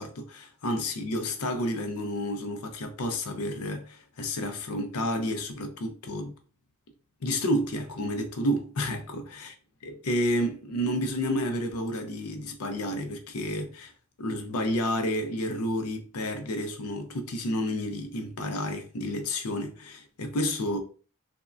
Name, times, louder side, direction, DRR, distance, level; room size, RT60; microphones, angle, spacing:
voice 1, 0.0-6.3 7.2-9.5 9.8-13.9 14.2-20.8, equal, 85° left, 0.6 m, -30 dB
3.5 x 2.1 x 2.4 m
head